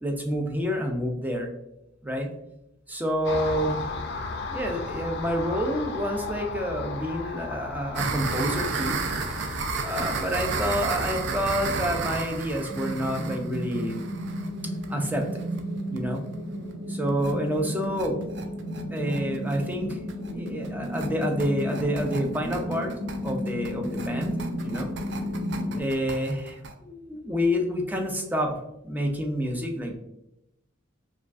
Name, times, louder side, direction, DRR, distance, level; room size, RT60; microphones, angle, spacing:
voice 1, 0.0-1.5 2.0-2.3 2.9-3.9 4.5-9.0 9.8-14.0 14.9-15.4 15.9-16.2 16.9-18.2 18.9-20.0 20.3-22.9 23.2-24.9 25.8-28.6 28.8-30.0, equal, 10° right, 2 dB, 0.5 m, -28 dB
Car passing by, 3.2-12.6, left 4 dB, 60° left, 0.4 m, -36 dB
sound 1, 8.0-15.6 16.0-16.1 16.3-16.4 16.7-16.8 17.1-17.3 17.7-26.7, right 4 dB, 60° right, 0.4 m, -33 dB
sound 2, 12.7-25.8, equal, 25° right, 0.9 m, -33 dB
4.9 x 2.3 x 2.4 m, 0.87 s
head